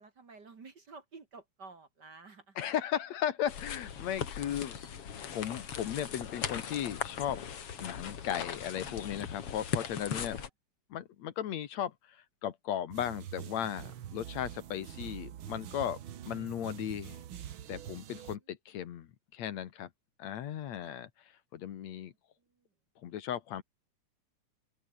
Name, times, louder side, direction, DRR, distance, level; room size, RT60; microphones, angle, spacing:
voice 1, 0.0-2.6 10.1-10.5 20.8-21.1 21.9-22.1, right 4 dB, 40° right, 2.4 m, -52 dB
voice 2, 2.6-5.0 5.3-7.4 7.8-10.4 10.9-16.0 16.3-17.2 17.7-19.9 20.2-21.1 21.5-22.1 23.0-23.6, left 10 dB, 70° left, 2.5 m, -36 dB
sound 1, 3.5-10.5, left 8 dB, 55° left, 2.8 m, -39 dB
sound 2, 12.9-18.4, right 10 dB, 55° right, 1.6 m, -45 dB
open air
omnidirectional pair, 3.4 m